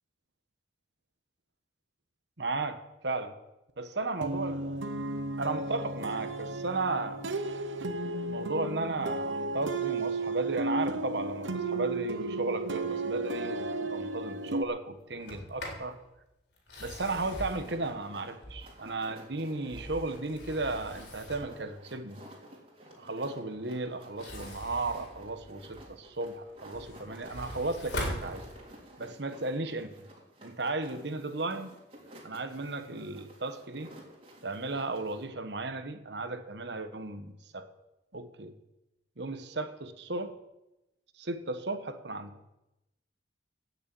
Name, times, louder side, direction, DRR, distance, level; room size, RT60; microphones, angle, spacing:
voice 1, 2.4-3.3 3.8-4.8 5.4-7.2 8.3-16.0 16.8-22.2 23.0-28.5 29.0-29.9 30.4-31.7 32.2-33.9 34.4-37.7 38.1-38.5 39.2-40.3 41.2-42.3, right 3 dB, 65° right, 9 dB, 1.3 m, -35 dB
sound 1, 4.2-14.6, right 2 dB, 90° right, 1.0 m, -34 dB
Sliding door, 15.1-15.9 16.6-18.9 19.5-21.6 24.0-25.9 26.4-28.9, left 1 dB, 65° left, 4.1 m, -42 dB
sound 2, 17.0-35.2, right 1 dB, 30° right, 3.3 m, -53 dB
15.5 x 6.7 x 8.4 m, 0.95 s
head